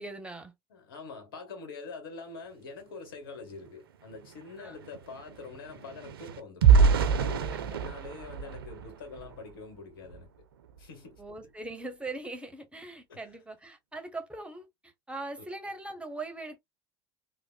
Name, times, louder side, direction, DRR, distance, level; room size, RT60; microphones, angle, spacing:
voice 1, 0.0-0.5 4.6-4.7 7.5-7.8 11.2-16.6, right 2 dB, 10° right, 0.8 m, -41 dB
voice 2, 0.7-10.3 10.8-11.2 13.1-13.2, left 4 dB, 70° left, 1.2 m, -45 dB
sound 1, 3.6-3.7 4.0-9.5 10.0-10.2 10.6-10.8, right 6 dB, 75° right, 0.4 m, -26 dB
3.3 x 2.1 x 2.4 m
figure-of-eight pair, 70°, 12 cm